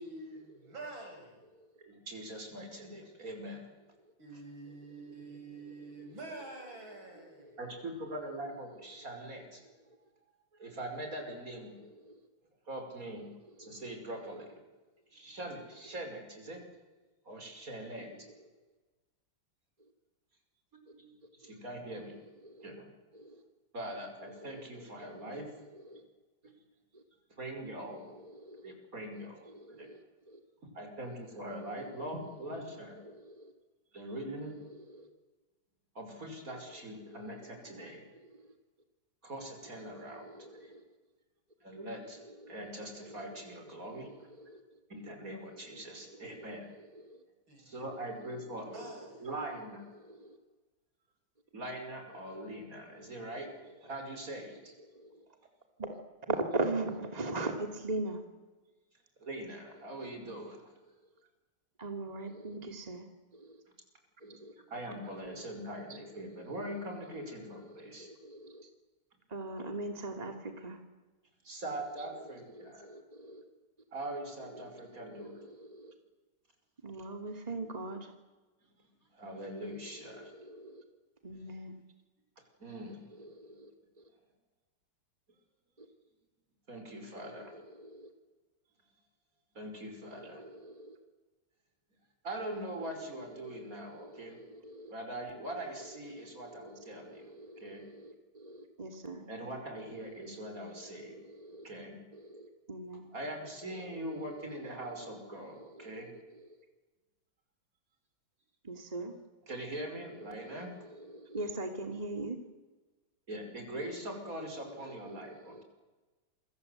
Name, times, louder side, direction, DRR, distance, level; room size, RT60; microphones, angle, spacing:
voice 1, 0.0-1.5 4.2-7.6 47.5-47.8 48.7-49.3, right 2 dB, 85° right, 2 dB, 7.6 m, -47 dB
voice 2, 1.8-3.7 7.6-9.6 10.6-11.8 12.7-13.3 13.6-14.6 15.1-16.6 17.3-18.2 20.9-21.1 21.4-22.2 22.6-22.9 23.7-25.5 27.4-28.2 28.6-29.9 30.8-33.0 33.9-34.6 35.9-38.0 39.2-40.3 40.6-40.7 41.6-42.2 42.5-44.3 44.9-46.7 47.7-48.9 49.2-49.8 51.5-53.5 53.8-54.7 59.2-60.6 64.2-64.4 64.7-68.1 71.4-72.9 73.9-75.4 79.1-80.3 82.6-83.6 86.7-87.5 89.5-90.5 92.2-94.4 94.9-97.3 97.6-97.8 99.3-101.2 101.6-102.0 103.1-106.1 109.5-110.7 113.3-115.7, right 1 dB, 45° right, 4 dB, 6.0 m, -42 dB
voice 3, 5.6-6.1 6.8-6.9 7.5-7.6 9.0-9.1 9.6-10.0 11.7-12.3 13.2-13.8 14.1-14.3 17.8-18.3 21.4-21.5 21.9-22.7 23.1-23.4 24.2-26.0 26.9-27.0 27.8-28.7 29.1-30.4 31.5-31.8 32.2-32.7 33.0-33.5 34.4-35.1 36.5-38.6 39.7-40.8 42.1-42.7 43.0-44.8 45.5-47.2 47.9-49.3 49.9-50.4 52.3-53.3 54.5-55.3 55.8-56.0 56.3-58.2 59.8-59.9 60.5-60.6 60.9-61.1 61.8-63.6 64.2-64.5 65.1-66.7 67.1-68.7 69.3-70.8 72.0-73.4 74.4-75.9 76.8-78.1 79.6-80.8 81.2-81.8 82.9-84.1 85.8-85.9 87.2-88.1 90.0-91.0 92.8-93.0 93.3-94.9 95.4-99.3 99.8-101.7 102.1-103.1 103.6-106.6 108.6-109.2 109.9-112.5 113.8-115.6, right 2 dB, 20° right, 4 dB, 2.7 m, -44 dB
28.5 x 24.5 x 8.1 m, 1.2 s
omnidirectional pair, 2.1 m